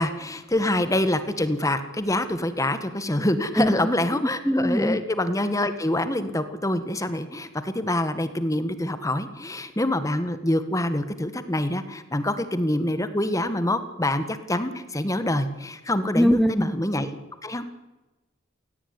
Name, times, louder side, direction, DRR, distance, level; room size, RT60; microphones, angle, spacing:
voice 1, 0.0-17.2 17.4-17.6, left 1 dB, 15° left, 11 dB, 1.8 m, -26 dB
voice 2, 4.4-5.0 16.2-16.7, equal, ahead, 9 dB, 1.0 m, -21 dB
27.5 x 17.5 x 9.8 m, 1.1 s
head